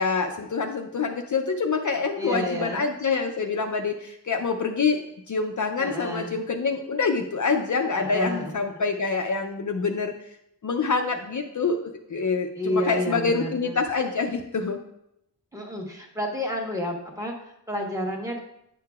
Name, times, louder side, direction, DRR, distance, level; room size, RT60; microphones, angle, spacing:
voice 1, 0.0-5.0 5.3-10.1 10.6-14.8, left 4 dB, 45° left, 4 dB, 0.5 m, -26 dB
voice 2, 2.2-2.9 5.8-6.4 7.9-8.8 12.6-13.7 15.5-18.4, equal, 10° right, 0 dB, 1.1 m, -30 dB
9.0 x 6.6 x 2.3 m, 0.80 s
wide cardioid pair, 120°, 41 cm